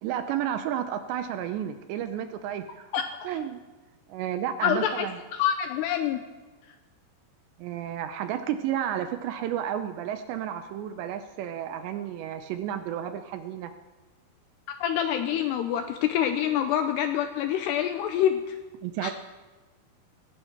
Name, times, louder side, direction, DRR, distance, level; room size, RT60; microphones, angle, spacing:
voice 1, 0.0-2.9 3.2-3.6 4.1-5.2 7.6-13.7 18.8-19.1, right 10 dB, 80° right, 9 dB, 2.7 m, -32 dB
voice 2, 2.9-3.3 4.6-5.1 5.3-6.2 14.7-18.6 19.0-19.1, left 10 dB, 80° left, 7 dB, 2.5 m, -26 dB
18.0 x 16.5 x 4.5 m, 1.2 s
omnidirectional pair, 5.6 m